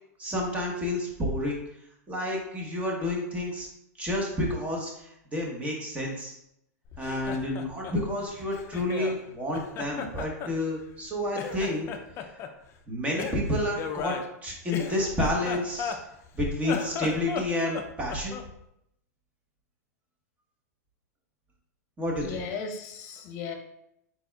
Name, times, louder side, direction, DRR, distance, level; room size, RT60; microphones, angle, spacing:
voice 1, 0.2-1.6 2.1-3.7 4.0-6.4 7.0-11.9 12.9-14.2 14.4-16.0 16.3-18.4 22.0-22.4, left 1 dB, 15° right, -1 dB, 1.1 m, -30 dB
Laughter, 6.9-9.2 9.5-11.1 11.3-12.5 13.2-16.3 16.6-18.5, left 7 dB, 30° left, 0.4 m, -36 dB
voice 2, 22.2-23.5, left 5 dB, 45° left, 3 dB, 0.8 m, -36 dB
4.3 x 4.1 x 2.3 m, 0.80 s
hypercardioid pair, 130°, 9 cm